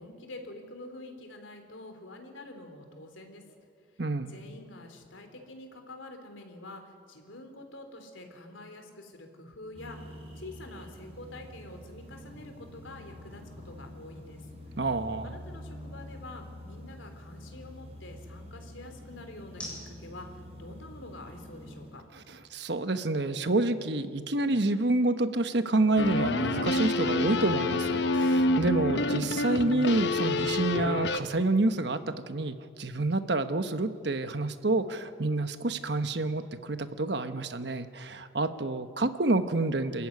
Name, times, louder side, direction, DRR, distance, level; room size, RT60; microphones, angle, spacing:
voice 1, 0.0-3.4 4.3-14.5 15.2-22.0, left 2 dB, 90° left, 5 dB, 3.6 m, -46 dB
voice 2, 4.0-4.3 14.8-15.3 22.5-40.1, right 2 dB, 60° right, 10 dB, 1.2 m, -28 dB
sound 1, 9.7-22.0, equal, 30° right, 5.8 m, -46 dB
sound 2, 9.8-24.0, left 1 dB, 5° left, 7.5 m, -55 dB
sound 3, 26.0-31.2, left 2 dB, 65° left, 1.0 m, -27 dB
27.5 x 14.5 x 9.6 m, 2.3 s
head